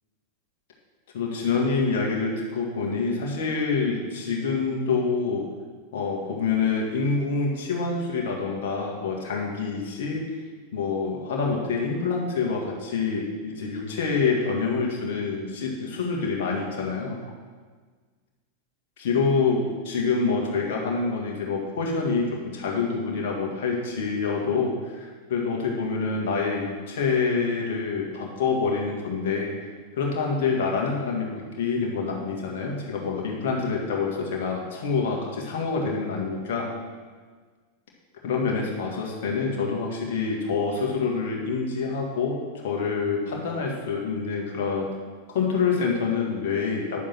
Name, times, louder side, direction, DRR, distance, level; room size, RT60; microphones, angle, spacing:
voice 1, 1.1-5.4 5.9-10.3 10.7-17.2 19.0-29.5 30.0-36.7 38.2-44.9 45.3-47.0, left 4 dB, 55° left, -1 dB, 1.8 m, -26 dB
9.9 x 7.1 x 4.5 m, 1.5 s
figure-of-eight pair, 90°, 0 cm